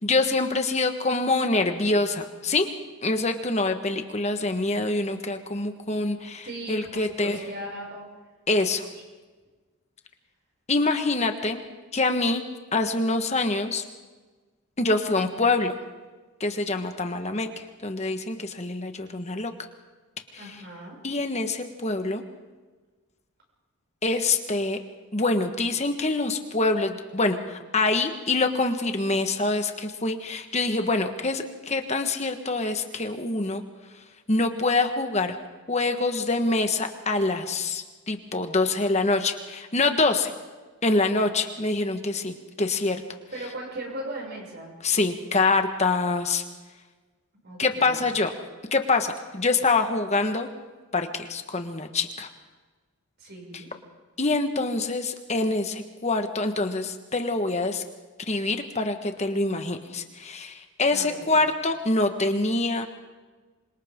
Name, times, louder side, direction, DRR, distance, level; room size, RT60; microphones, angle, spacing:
voice 1, 0.0-2.7 3.0-7.4 8.5-8.9 10.7-11.6 11.9-12.4 12.7-13.8 14.8-15.7 16.4-17.5 17.8-19.5 21.0-22.2 24.0-24.8 25.1-33.6 34.3-35.4 35.7-40.3 40.8-43.0 44.8-46.4 47.6-48.3 48.7-50.5 50.9-52.3 54.2-57.8 58.3-62.9, left 3 dB, 30° left, 6 dB, 1.4 m, -25 dB
voice 2, 6.4-8.1 8.9-9.0 20.4-21.0 43.3-44.7 47.4-48.1 53.2-53.7 60.9-61.4, right 1 dB, 50° right, -2 dB, 6.7 m, -38 dB
27.0 x 25.5 x 3.8 m, 1.3 s
head